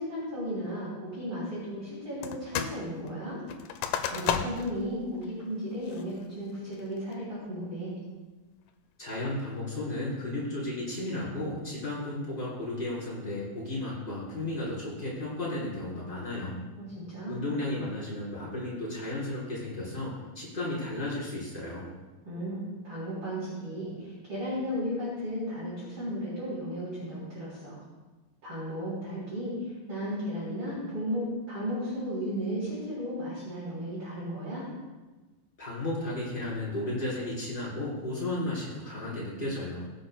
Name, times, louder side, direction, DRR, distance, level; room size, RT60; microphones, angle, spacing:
voice 1, 0.0-3.4 4.0-7.9 16.8-17.4 22.2-22.6 22.8-27.8 28.4-34.6, equal, 35° right, -8 dB, 4.4 m, -35 dB
sound 1, 2.2-2.8 3.1-4.8 5.2-5.3 5.8-6.2 6.7-7.1, left 9 dB, 80° left, 2.0 m, -32 dB
voice 2, 9.0-16.6 17.3-21.9 35.6-39.8, left 1 dB, 15° left, -7 dB, 3.8 m, -34 dB
21.0 x 7.9 x 2.2 m, 1.2 s
omnidirectional pair, 4.1 m